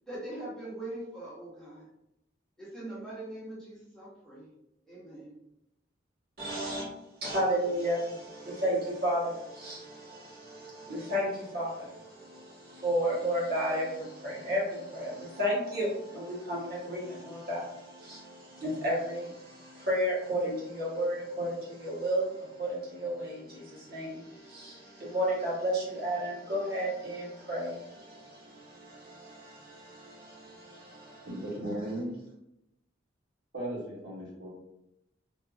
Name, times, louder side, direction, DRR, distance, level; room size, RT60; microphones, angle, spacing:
voice 1, 0.1-1.9 2.6-4.4 4.9-5.3, right 1 dB, 5° left, -9 dB, 1.2 m, -42 dB
voice 2, 6.4-6.8 7.2-31.3 31.6-31.7, equal, 55° right, -6 dB, 1.5 m, -33 dB
voice 3, 31.3-32.1 33.5-34.5, right 1 dB, 80° right, -7 dB, 1.5 m, -36 dB
3.4 x 2.9 x 2.5 m, 0.84 s
head